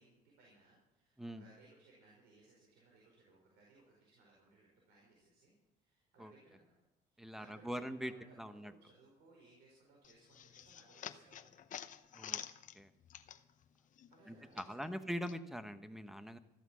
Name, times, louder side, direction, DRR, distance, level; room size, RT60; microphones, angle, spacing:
voice 1, 0.0-6.7 7.1-11.6 14.1-15.1, right 3 dB, 85° right, -2 dB, 4.8 m, -65 dB
voice 2, 7.2-8.1 8.4-8.7 12.1-12.4 12.7-12.9 14.3-16.4, equal, ahead, 10 dB, 1.1 m, -43 dB
sound 1, 10.0-13.7 14.0-15.4, left 9 dB, 50° left, 0.8 m, -48 dB
14.5 x 12.0 x 6.3 m, 0.91 s
cardioid pair, 110°, 17 cm